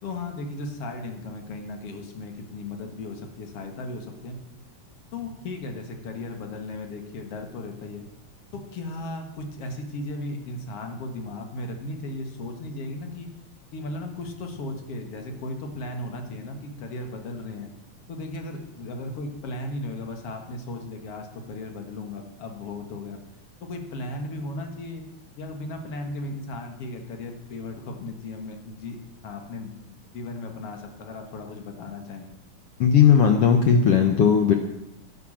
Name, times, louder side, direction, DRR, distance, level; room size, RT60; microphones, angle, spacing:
voice 1, 0.0-4.4 5.1-8.1 8.5-13.3 13.7-17.7 18.1-23.2 23.6-25.0 25.4-29.0 29.2-32.3, left 2 dB, 50° left, 4 dB, 2.2 m, -36 dB
voice 2, 32.8-34.5, left 7 dB, 75° left, 4 dB, 1.3 m, -17 dB
11.0 x 11.0 x 7.4 m, 0.91 s
omnidirectional pair, 3.9 m